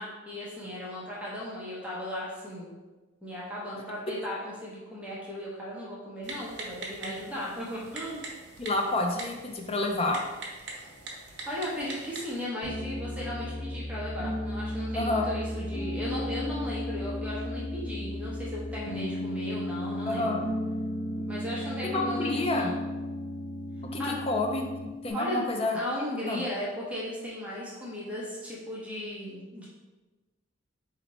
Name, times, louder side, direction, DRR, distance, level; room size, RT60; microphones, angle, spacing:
voice 1, 0.0-2.7 3.2-8.3 11.5-20.3 21.3-22.7 24.0-24.2 25.1-25.4 25.7-29.7, left 1 dB, 5° right, -6 dB, 0.8 m, -36 dB
Typing, 6.2-12.4, right 3 dB, 60° right, 0.9 m, -43 dB
voice 2, 8.6-10.2 14.9-15.2 20.1-20.4 21.8-22.7 23.9-25.8 26.3-26.4, left 2 dB, 30° left, 2 dB, 0.5 m, -29 dB
Piano, 12.6-25.1, left 1 dB, 65° left, 1.3 m, -34 dB
4.1 x 2.8 x 4.2 m, 1.2 s
head